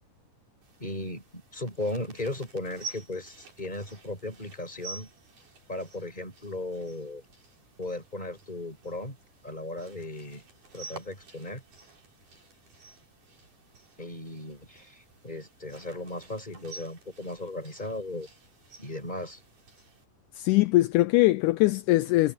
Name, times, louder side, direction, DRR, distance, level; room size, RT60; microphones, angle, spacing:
sound 1, 0.6-20.0, right 4 dB, 70° right, 8.0 m, -50 dB
voice 1, 0.8-5.1 5.7-7.2 7.8-9.2 9.4-10.4 10.7-11.6 14.0-18.3 18.8-19.4, left 2 dB, 10° left, 6.6 m, -36 dB
voice 2, 20.4-22.3, left 18 dB, 80° left, 2.0 m, -22 dB
omnidirectional pair, 3.8 m